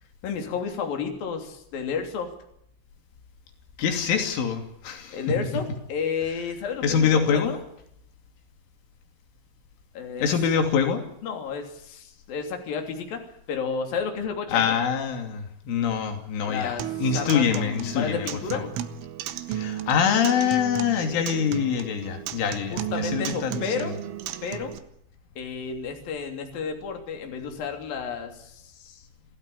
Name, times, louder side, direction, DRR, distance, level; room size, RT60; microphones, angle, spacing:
voice 1, 0.2-2.3 5.1-7.6 9.9-10.3 11.2-14.8 16.4-18.7 22.7-24.0 24.4-24.8 25.4-29.0, left 6 dB, 55° left, 4 dB, 4.6 m, -32 dB
voice 2, 3.8-5.2 6.8-7.5 10.2-11.0 14.5-18.3 18.5-18.7 19.5-23.9, left 7 dB, 85° left, 5 dB, 5.2 m, -25 dB
Acoustic guitar, 16.8-24.8, right 11 dB, 90° right, 3.8 m, -34 dB
27.5 x 16.5 x 8.6 m, 0.73 s
omnidirectional pair, 5.4 m